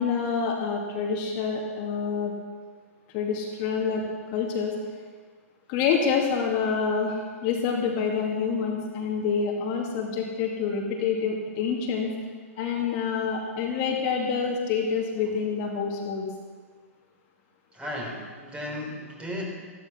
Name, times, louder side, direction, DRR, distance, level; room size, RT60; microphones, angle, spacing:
voice 1, 0.0-2.3 3.1-4.0 4.3-4.7 5.7-12.1 12.6-16.3, left 6 dB, 40° left, -1 dB, 2.4 m, -27 dB
voice 2, 17.7-19.4, left 1 dB, 10° right, -1 dB, 4.2 m, -35 dB
14.5 x 13.0 x 5.8 m, 1.5 s
hypercardioid pair, 125°, 8 cm